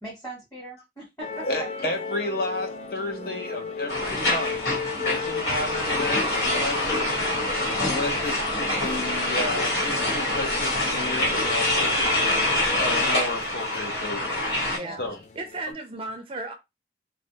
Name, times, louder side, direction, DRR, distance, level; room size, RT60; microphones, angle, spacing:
voice 1, 0.0-1.7 14.6-15.0, right 2 dB, 15° left, 1.0 m, -40 dB
sound 1, 1.2-15.7, left 5 dB, 40° left, 0.3 m, -36 dB
voice 2, 1.4-4.7 5.0-7.0 7.8-12.4 12.8-14.2 15.0-15.2, left 2 dB, 60° left, 0.7 m, -32 dB
voice 3, 3.1-3.7 14.7-15.0 15.3-16.5, right 2 dB, 30° right, 0.4 m, -36 dB
sound 2, 3.9-14.8, left 1 dB, 90° left, 1.3 m, -25 dB
2.2 x 2.1 x 2.7 m
head